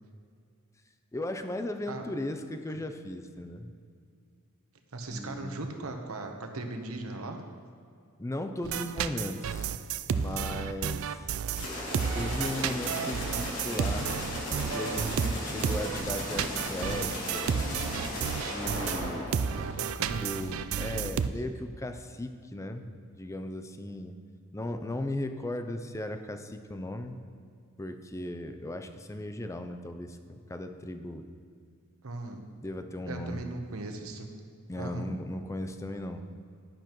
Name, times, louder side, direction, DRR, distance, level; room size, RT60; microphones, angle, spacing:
voice 1, 1.1-3.7 5.1-5.6 8.2-9.7 10.1-11.2 12.1-14.1 14.7-17.6 18.4-19.4 20.2-24.2 24.5-27.2 27.8-31.3 32.6-33.4 34.7-36.2, left 1 dB, 15° left, 8 dB, 0.5 m, -37 dB
voice 2, 4.9-7.4 19.1-20.2 32.0-32.4 33.1-34.3 34.8-35.1, right 2 dB, 90° right, 4 dB, 1.0 m, -38 dB
sound 1, 8.6-21.3, right 7 dB, 70° right, 0.4 m, -32 dB
sound 2, 11.5-20.2, left 1 dB, 85° left, 2.5 m, -36 dB
10.5 x 10.0 x 3.1 m, 2.3 s
head